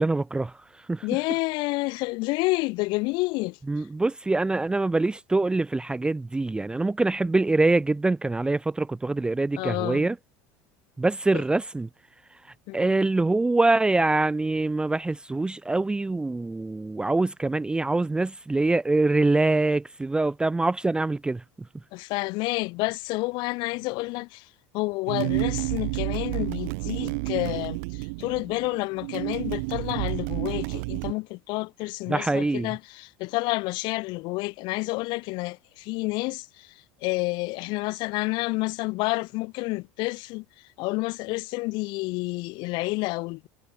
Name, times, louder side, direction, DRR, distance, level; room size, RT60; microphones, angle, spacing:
voice 1, 0.0-1.1 3.7-10.2 11.0-11.9 12.7-21.4 32.1-32.7, right 2 dB, 10° right, 0.6 m, -24 dB
voice 2, 1.0-3.6 9.6-10.1 12.7-12.9 21.9-24.5 24.7-36.7 37.0-40.4 40.8-43.5, left 24 dB, 60° left, 3.5 m, -29 dB
sound 1, 25.1-31.1, right 30 dB, 70° right, 2.2 m, -30 dB
supercardioid pair, 100°, 9 cm